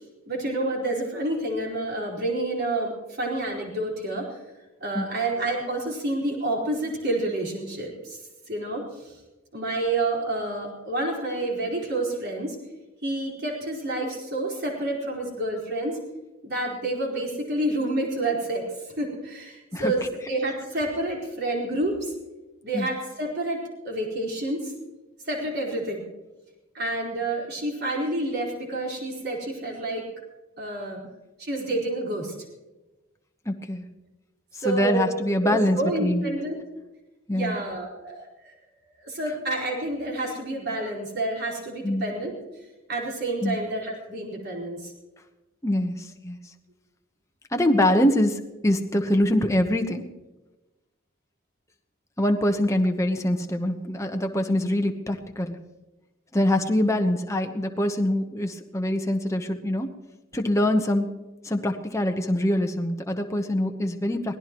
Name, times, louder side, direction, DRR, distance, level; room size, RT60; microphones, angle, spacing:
voice 1, 0.3-4.4 4.8-8.2 8.5-9.1 9.5-12.6 13.0-16.0 16.4-22.1 22.6-24.7 25.3-26.0 26.7-30.0 30.6-31.0 31.4-32.3 34.6-35.1 35.4-36.6 37.3-38.5 39.0-42.4 42.9-44.9, right 2 dB, 50° right, -1 dB, 4.6 m, -29 dB
voice 2, 33.5-33.9 34.6-36.2 37.3-37.6 41.8-42.1 43.4-43.6 45.6-46.4 47.5-50.0 52.2-55.6 56.3-59.9 60.3-61.1 61.4-64.4, left 1 dB, 15° left, 4 dB, 1.0 m, -24 dB
24.0 x 18.0 x 3.1 m, 1.1 s
head